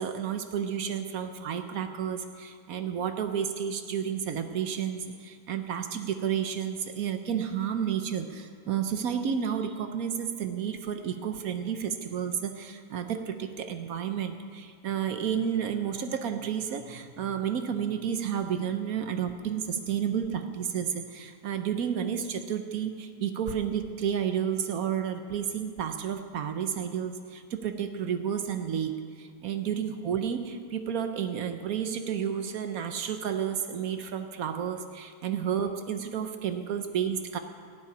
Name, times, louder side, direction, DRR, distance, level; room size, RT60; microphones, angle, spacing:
voice 1, 0.0-37.4, right 8 dB, 65° right, 8 dB, 1.1 m, -31 dB
12.0 x 7.1 x 9.5 m, 2.3 s
omnidirectional pair, 1.8 m